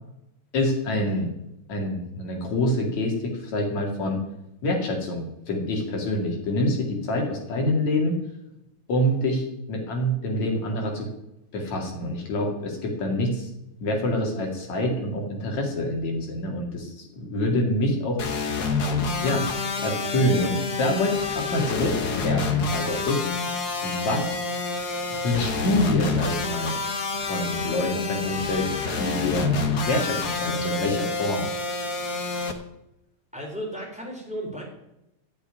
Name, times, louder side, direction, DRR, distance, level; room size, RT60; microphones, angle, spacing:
voice 1, 0.5-1.3 1.7-4.2 4.6-8.1 8.9-11.1 11.5-13.5 13.8-18.2 19.2-19.5 19.8-23.2 23.8-24.4 25.2-26.8 27.2-28.7 29.0-31.5, left 1 dB, 70° left, 2 dB, 3.6 m, -26 dB
sound 1, 18.2-32.5, left 4 dB, 50° left, 1.2 m, -28 dB
voice 2, 33.3-34.6, equal, ahead, 0 dB, 3.5 m, -34 dB
13.5 x 6.9 x 9.7 m, 0.85 s
omnidirectional pair, 3.4 m